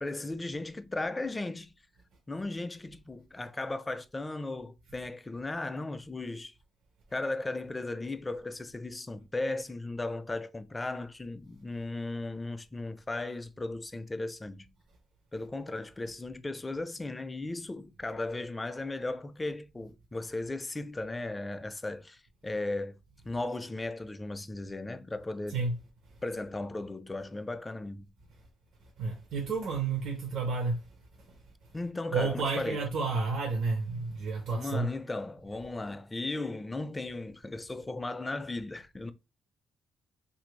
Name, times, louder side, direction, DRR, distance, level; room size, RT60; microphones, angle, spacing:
voice 1, 0.0-1.7 2.3-6.5 7.1-14.7 15.3-22.9 23.2-25.6 26.2-28.1 31.7-32.8 34.5-39.1, left 2 dB, 20° left, 0.3 m, -36 dB
voice 2, 29.0-30.8 32.1-34.9, right 4 dB, 70° right, 0.7 m, -31 dB
2.9 x 2.5 x 3.1 m
cardioid pair, 90°, 0 cm